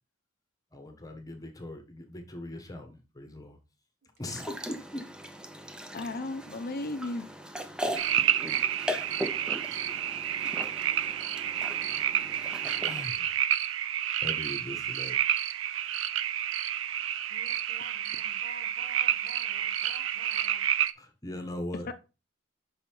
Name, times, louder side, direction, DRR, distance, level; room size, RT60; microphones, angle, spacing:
voice 1, 0.7-3.6 4.2-5.0 9.7-10.1 10.4-10.5 12.8-13.5 14.2-15.1 21.0-21.9, left 1 dB, 20° left, 1.1 m, -40 dB
sound 1, 4.3-13.0, equal, 5° right, 0.5 m, -39 dB
voice 2, 5.9-7.3 21.9-22.0, left 2 dB, 50° left, 0.6 m, -35 dB
sound 2, 8.0-20.9, right 10 dB, 90° right, 0.5 m, -30 dB
voice 3, 8.5-8.8 17.3-20.6, right 2 dB, 65° right, 2.7 m, -50 dB
5.6 x 5.4 x 4.4 m
head